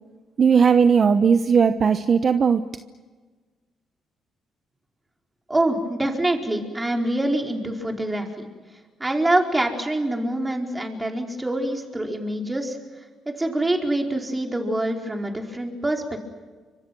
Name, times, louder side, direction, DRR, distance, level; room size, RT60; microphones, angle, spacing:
voice 1, 0.4-2.6, right 6 dB, 45° right, 10 dB, 1.0 m, -17 dB
voice 2, 5.5-8.5 9.0-12.8 13.2-16.0, right 1 dB, 15° right, 2 dB, 4.9 m, -25 dB
29.5 x 26.0 x 6.3 m, 1.4 s
cardioid pair, 90°, 0 cm